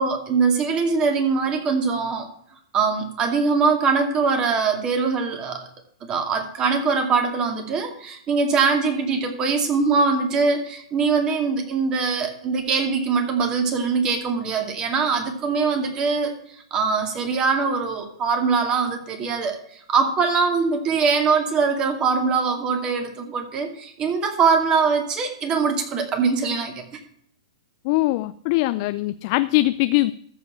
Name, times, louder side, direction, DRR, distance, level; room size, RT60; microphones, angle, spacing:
voice 1, 0.0-2.3 2.7-5.6 6.0-27.0, right 5 dB, 30° right, 5 dB, 2.3 m, -22 dB
voice 2, 27.8-30.1, left 18 dB, 50° left, 13 dB, 0.4 m, -21 dB
14.0 x 4.9 x 6.0 m, 0.68 s
hypercardioid pair, 120°, 3 cm